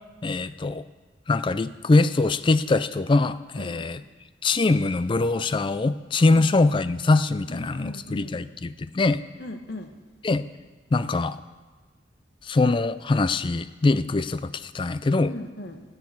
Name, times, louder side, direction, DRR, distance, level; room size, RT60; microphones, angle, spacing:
voice 1, 0.2-0.8 1.3-4.0 4.4-9.2 10.2-10.5 10.9-11.4 12.4-15.3, left 3 dB, 25° left, 14 dB, 0.4 m, -23 dB
voice 2, 7.5-8.4 9.4-9.9 15.3-15.8, left 1 dB, 60° left, 6 dB, 1.1 m, -37 dB
10.5 x 7.9 x 8.4 m, 1.3 s
head